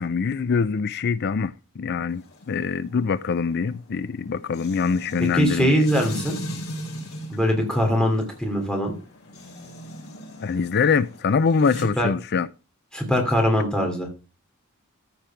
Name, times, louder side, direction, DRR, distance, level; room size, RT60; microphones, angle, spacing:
voice 1, 0.0-5.9 10.4-12.5, left 5 dB, 50° left, 0.4 m, -24 dB
sound 1, 2.1-11.8, equal, 80° left, 4.8 m, -38 dB
voice 2, 5.2-6.4 7.3-8.9 12.0-12.1 12.9-14.1, equal, 5° left, 2.8 m, -22 dB
14.0 x 5.0 x 5.8 m
head